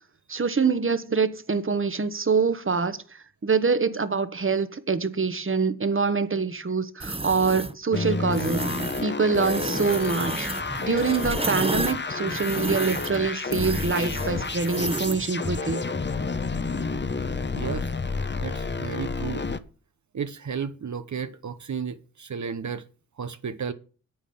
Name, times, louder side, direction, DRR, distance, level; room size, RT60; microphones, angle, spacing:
voice 1, 0.3-8.6 9.0-10.5 10.8-15.8, right 5 dB, 35° right, 1.3 m, -25 dB
sound 1, 7.0-7.7 8.3-9.0 9.3-15.3, right 2 dB, 15° right, 1.0 m, -32 dB
sound 2, 7.9-19.6, left 4 dB, 30° left, 1.0 m, -30 dB
voice 2, 17.5-17.9 18.4-19.4 20.1-22.8 23.2-23.7, right 6 dB, 55° right, 0.9 m, -33 dB
8.9 x 8.4 x 5.6 m
cardioid pair, 45°, 35 cm